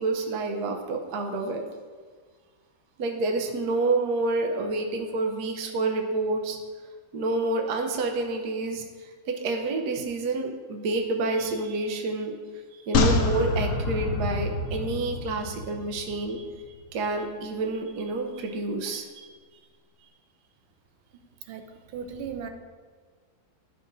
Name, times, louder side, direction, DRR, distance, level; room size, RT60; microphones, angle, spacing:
voice 1, 0.0-1.6 3.0-6.6 7.1-8.8 9.3-12.4 12.7-16.5 16.9-19.3, right 3 dB, 60° right, 3 dB, 1.2 m, -28 dB
sound 1, 12.9-16.4 16.7-16.8, left 3 dB, 65° left, 0.9 m, -26 dB
voice 2, 21.4-22.5, right 7 dB, 85° right, 5 dB, 1.6 m, -37 dB
12.5 x 5.8 x 2.6 m, 1.5 s
omnidirectional pair, 2.2 m